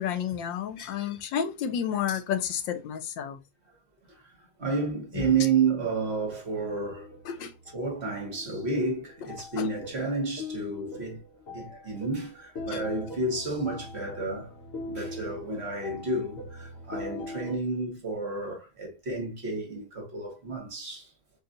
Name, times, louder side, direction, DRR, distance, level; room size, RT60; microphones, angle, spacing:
voice 1, 0.0-3.4 7.3-7.5 9.6-9.7 12.7-12.8, left 8 dB, 80° left, 1.4 m, -31 dB
voice 2, 4.6-7.5 7.7-11.2 11.5-14.5 14.8-21.1, right 4 dB, 40° right, 1.2 m, -31 dB
sound 1, 5.9-17.6, left 2 dB, 55° left, 1.2 m, -42 dB
4.1 x 2.4 x 3.7 m
omnidirectional pair, 2.0 m